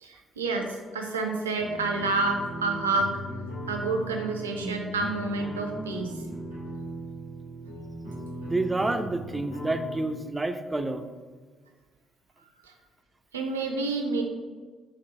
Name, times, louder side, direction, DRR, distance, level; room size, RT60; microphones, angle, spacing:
voice 1, 0.0-3.1 3.7-6.1 12.7-12.8 13.3-14.2, right 3 dB, 80° right, 3 dB, 0.4 m, -29 dB
sound 1, 1.6-10.0, right 1 dB, 85° left, 1.2 m, -38 dB
voice 2, 8.4-11.0, right 2 dB, 15° right, 8 dB, 0.4 m, -29 dB
4.4 x 2.6 x 4.2 m, 1.5 s
figure-of-eight pair, 45°, 0 cm